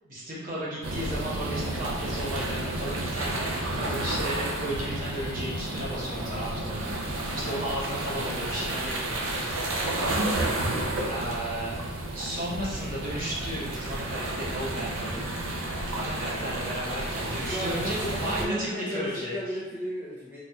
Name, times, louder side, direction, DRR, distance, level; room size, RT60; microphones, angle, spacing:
voice 1, 0.0-6.9 7.3-10.7 11.1-11.8 12.1-15.3 15.6-17.9 18.2-19.4, right 1 dB, 45° right, -7 dB, 1.0 m, -34 dB
sound 1, 0.8-18.5, right 1 dB, 80° right, 0.5 m, -31 dB
voice 2, 17.4-20.4, equal, 10° right, -9 dB, 0.5 m, -35 dB
4.0 x 2.5 x 2.3 m, 1.2 s
head